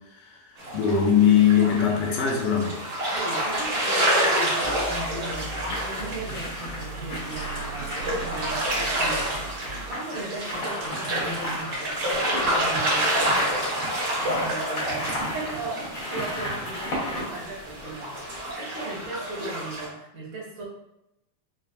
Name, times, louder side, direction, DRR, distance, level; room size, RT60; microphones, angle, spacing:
voice 1, 0.1-2.8, left 8 dB, 80° left, 1 dB, 2.1 m, -21 dB
sound 1, 0.6-19.9, right 1 dB, 45° right, 1.4 m, -29 dB
sound 2, 1.2-1.9 3.1-18.7 19.0-19.1, left 1 dB, 65° left, 0.8 m, -36 dB
voice 2, 3.1-13.6 14.2-20.6, right 2 dB, 70° right, -5 dB, 2.3 m, -37 dB
sound 3, 4.6-10.0, right 4 dB, 90° right, 2.4 m, -40 dB
6.2 x 2.3 x 2.4 m, 0.87 s
omnidirectional pair, 3.9 m